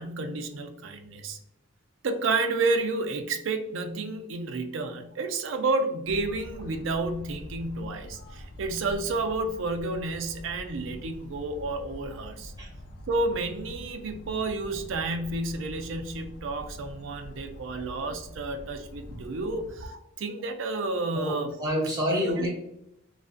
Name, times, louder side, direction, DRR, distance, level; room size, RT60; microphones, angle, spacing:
voice 1, 0.0-1.4 2.0-12.5 13.1-21.5 22.4-22.5, right 3 dB, 75° right, 6 dB, 0.4 m, -30 dB
sound 1, 6.0-19.9, equal, 55° left, 0.3 m, -44 dB
voice 2, 21.1-22.5, equal, 20° right, -3 dB, 0.7 m, -28 dB
2.5 x 2.3 x 2.4 m, 0.80 s
head